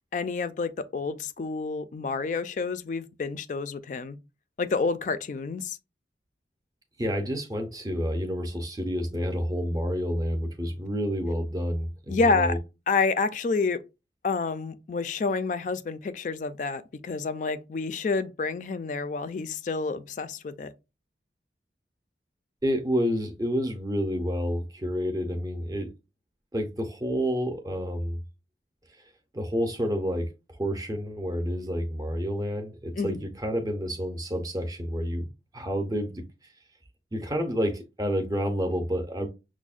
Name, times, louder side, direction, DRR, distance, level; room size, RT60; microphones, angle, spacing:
voice 1, 0.1-4.2 4.6-5.8 12.1-12.6 12.9-13.8 14.2-20.7 32.9-33.2, left 4 dB, 45° left, 0.3 m, -29 dB
voice 2, 7.0-12.6 22.6-25.9 26.5-28.2 29.3-35.3 35.5-36.2 37.1-39.3, equal, 20° right, 0.5 m, -29 dB
6.0 x 2.1 x 2.4 m
head